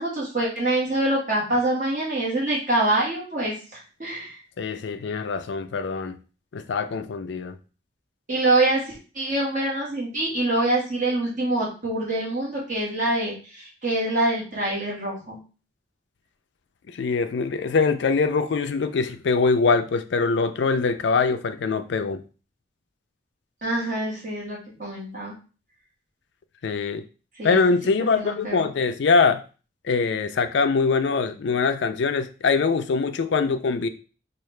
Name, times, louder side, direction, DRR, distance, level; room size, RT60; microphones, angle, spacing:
voice 1, 0.0-4.4 8.3-15.4 23.6-25.3 27.4-27.6 28.1-28.7, right 2 dB, 45° right, -5 dB, 1.6 m, -25 dB
voice 2, 4.6-6.2 6.5-7.6 16.9-22.2 26.6-27.0 27.4-29.4 29.8-33.9, left 4 dB, 75° left, 9 dB, 0.4 m, -23 dB
4.6 x 2.4 x 3.2 m, 0.35 s
head